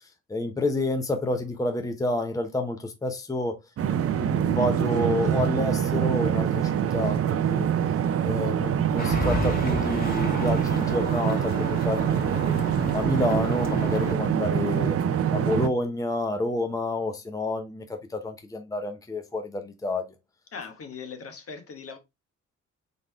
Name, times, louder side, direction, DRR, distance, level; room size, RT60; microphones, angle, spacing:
voice 1, 0.3-3.6 3.9-7.7 8.2-12.5 12.9-15.0 15.3-20.1, left 2 dB, 10° left, 0.8 m, -29 dB
sound 1, 3.8-15.7, right 9 dB, 50° right, 0.6 m, -25 dB
sound 2, 9.0-14.1, left 2 dB, 30° left, 1.9 m, -33 dB
voice 2, 20.5-22.0, left 5 dB, 50° left, 1.2 m, -39 dB
4.0 x 3.6 x 3.2 m
cardioid pair, 90°, 30 cm